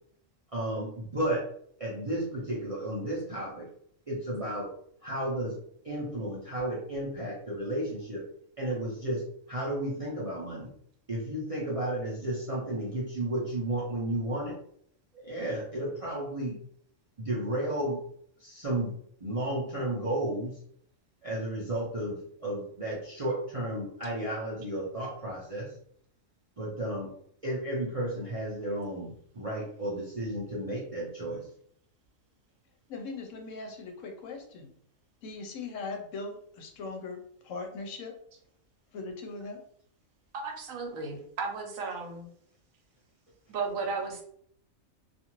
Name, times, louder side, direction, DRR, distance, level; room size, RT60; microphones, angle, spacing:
voice 1, 0.5-1.5 1.8-3.7 4.1-4.7 5.0-5.6 5.8-8.2 8.6-10.7 11.1-14.6 15.1-16.6 17.2-18.0 18.4-18.9 19.2-20.6 21.2-25.7 26.6-27.1 27.4-31.5, right 1 dB, 45° right, -6 dB, 0.4 m, -33 dB
voice 2, 32.9-34.7 35.2-38.1 38.9-39.6, left 3 dB, 70° left, 3 dB, 0.9 m, -40 dB
voice 3, 40.3-42.3 43.5-44.2, right 4 dB, 75° right, 2 dB, 1.0 m, -34 dB
2.5 x 2.4 x 2.9 m, 0.64 s
omnidirectional pair, 1.4 m